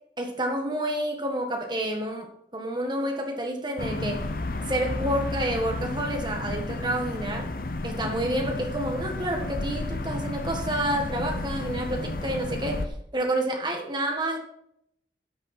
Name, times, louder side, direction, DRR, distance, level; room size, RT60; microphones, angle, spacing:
voice 1, 0.2-4.2 4.7-7.5 7.8-14.4, right 1 dB, 25° right, 3 dB, 1.6 m, -29 dB
sound 1, 3.8-12.9, left 2 dB, 55° left, 0.8 m, -32 dB
13.0 x 7.0 x 4.3 m, 0.76 s
head